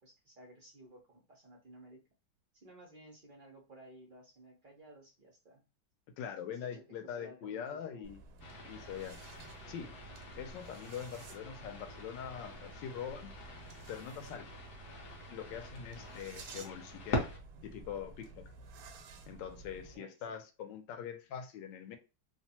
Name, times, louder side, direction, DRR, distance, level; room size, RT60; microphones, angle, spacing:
voice 1, 0.0-2.0 2.5-5.6 6.5-6.8 7.2-8.1 19.9-20.4, right 1 dB, 70° right, 0.4 m, -56 dB
voice 2, 6.2-8.2 8.7-9.2 9.7-9.9 10.4-13.3 13.9-14.5 15.3-17.3 17.6-18.4 19.3-22.0, left 8 dB, 75° left, 1.2 m, -43 dB
sound 1, 8.0-20.0, right 3 dB, 90° right, 1.4 m, -53 dB
sound 2, 8.4-17.4, left 2 dB, 60° left, 0.8 m, -44 dB
3.2 x 2.1 x 2.8 m
omnidirectional pair, 2.1 m